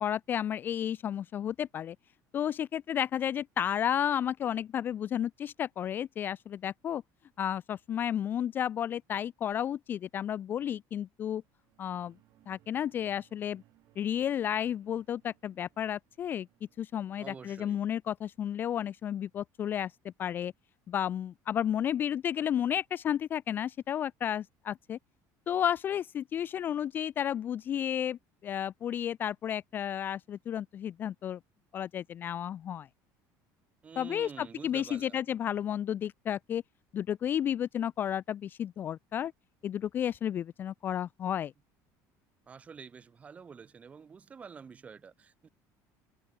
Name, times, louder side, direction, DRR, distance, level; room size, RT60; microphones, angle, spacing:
voice 1, 0.0-2.0 2.3-7.0 7.4-11.4 11.8-12.1 12.5-13.6 14.0-16.5 16.8-19.9 20.2-20.5 20.9-25.0 25.5-31.4 31.7-32.9 34.0-36.6 36.9-39.3 39.6-41.5, left 9 dB, 25° left, 0.4 m, -32 dB
sound 1, 11.4-18.0, right 16 dB, 45° right, 4.7 m, -67 dB
voice 2, 17.2-17.8 33.8-35.3 42.5-45.5, right 6 dB, 20° right, 1.6 m, -48 dB
cardioid pair, 180°, 8 cm